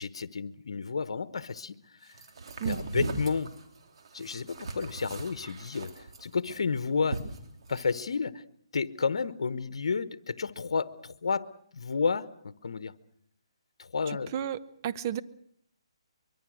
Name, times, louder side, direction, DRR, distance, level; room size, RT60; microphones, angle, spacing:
voice 1, 0.0-1.7 2.7-3.5 4.1-5.9 6.2-7.2 7.7-8.4 8.7-11.5 11.7-12.9 13.8-14.3, left 5 dB, 75° left, 14 dB, 1.1 m, -31 dB
sound 1, 2.1-8.0, right 3 dB, 65° right, 3.6 m, -38 dB
voice 2, 14.1-15.2, right 9 dB, 35° right, 13 dB, 0.8 m, -33 dB
24.0 x 23.0 x 6.4 m, 0.65 s
hypercardioid pair, 155°, 3 cm